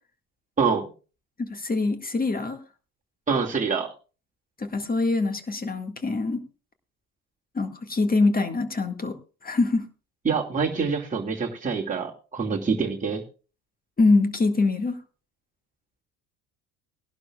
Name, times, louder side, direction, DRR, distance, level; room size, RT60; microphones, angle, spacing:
voice 1, 1.4-2.6 4.6-6.4 7.6-9.2 9.4-9.8 14.0-15.0, left 3 dB, 20° left, 7 dB, 1.9 m, -24 dB
voice 2, 3.3-3.9 10.2-13.2, right 5 dB, 15° right, -2 dB, 2.4 m, -25 dB
20.5 x 11.5 x 2.4 m, 0.35 s
hypercardioid pair, 70°, 44 cm